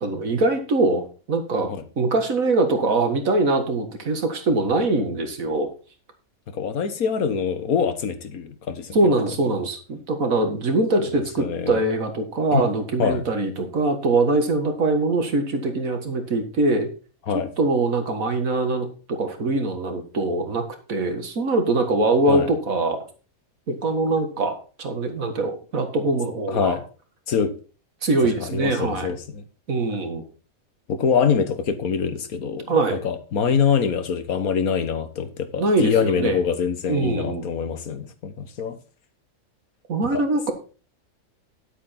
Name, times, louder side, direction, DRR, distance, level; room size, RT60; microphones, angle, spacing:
voice 1, 0.0-1.7 2.0-5.7 8.9-16.9 17.6-23.0 23.7-26.8 28.0-29.2 29.7-30.2 32.7-33.0 35.6-36.4 36.9-37.4 39.9-40.5, right 2 dB, 70° right, 6 dB, 2.2 m, -23 dB
voice 2, 6.5-9.0 11.0-11.1 11.4-11.8 12.5-12.7 13.0-13.2 17.3-17.5 22.3-22.5 26.5-26.8 27.3-27.5 28.4-29.4 30.9-32.8 33.0-38.8 40.1-40.2, left 6 dB, 85° left, 10 dB, 1.7 m, -24 dB
10.0 x 8.2 x 4.3 m, 0.36 s
omnidirectional pair, 1.5 m